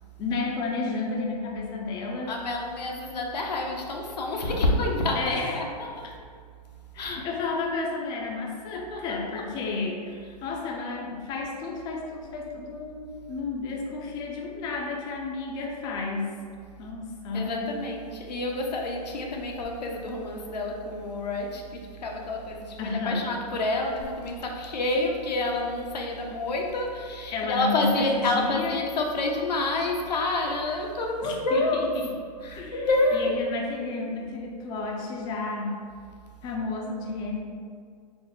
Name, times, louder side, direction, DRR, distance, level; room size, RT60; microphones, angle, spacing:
voice 1, 0.2-2.3 5.2-5.6 6.9-10.2 10.4-16.3 16.8-17.8 22.8-23.2 27.3-28.8 31.2-31.6 32.6-32.8 33.1-35.8 36.4-37.4, left 3 dB, 20° left, -1 dB, 0.4 m, -31 dB
voice 2, 2.3-6.2 6.8-7.3 8.7-9.5 10.1-10.4 17.3-32.0 32.4-33.4 36.2-36.6, left 2 dB, 90° left, 1 dB, 0.7 m, -28 dB
4.2 x 2.0 x 3.8 m, 2.1 s
hypercardioid pair, 135°, 21 cm